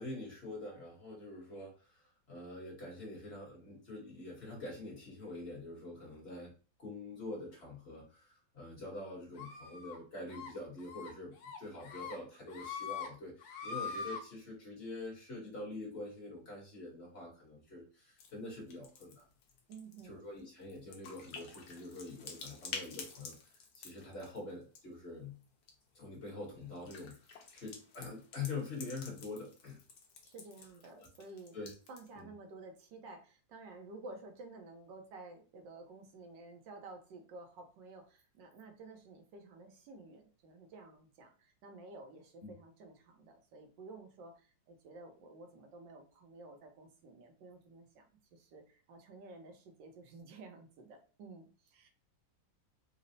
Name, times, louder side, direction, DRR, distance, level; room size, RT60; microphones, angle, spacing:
voice 1, 0.0-6.5 6.8-19.2 20.0-25.4 25.9-29.8 30.9-31.1 31.5-31.7 32.1-32.3 42.4-42.5, left 2 dB, 40° left, -3 dB, 1.1 m, -45 dB
sound 1, 9.4-10.0 10.3-10.5 10.9-11.1 11.4-12.2 12.5-13.1 13.4-14.2, left 5 dB, 85° left, 1.4 m, -42 dB
sound 2, 18.2-18.3 18.6-25.0 25.4-25.7 26.6-32.2, left 5 dB, 70° left, 1.2 m, -50 dB
voice 2, 19.7-20.3 30.2-31.6 31.9-51.9, right 3 dB, 80° right, 4 dB, 1.4 m, -52 dB
4.1 x 2.0 x 2.6 m, 0.37 s
omnidirectional pair, 2.0 m